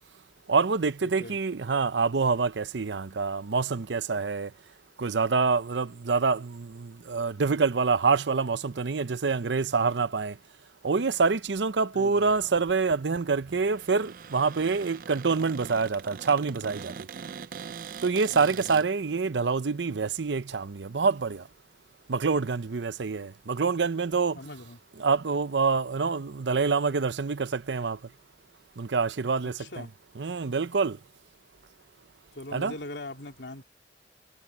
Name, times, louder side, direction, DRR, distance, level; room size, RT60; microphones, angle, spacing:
voice 1, 0.5-4.5 5.0-10.3 10.8-16.9 18.0-21.4 22.1-24.4 25.0-28.0 28.8-29.5 30.2-31.0 32.5-32.7, right 4 dB, 85° right, 0.7 m, -26 dB
voice 2, 1.0-1.4 11.9-12.3 18.3-18.9 24.3-24.8 29.4-29.9 32.3-33.6, left 2 dB, 80° left, 3.0 m, -41 dB
Cupboard open or close, 12.2-18.9, right 6 dB, 50° right, 0.4 m, -43 dB
head